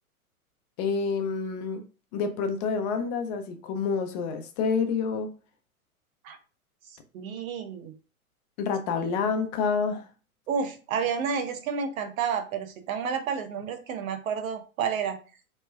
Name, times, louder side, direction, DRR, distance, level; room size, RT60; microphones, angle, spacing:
voice 1, 0.8-1.8 2.1-5.3 8.6-10.0, left 5 dB, 30° left, 0.4 m, -28 dB
voice 2, 7.1-7.9 10.5-15.2, right 6 dB, 65° right, 0.8 m, -30 dB
3.2 x 2.2 x 3.3 m
hypercardioid pair, 120°, 43 cm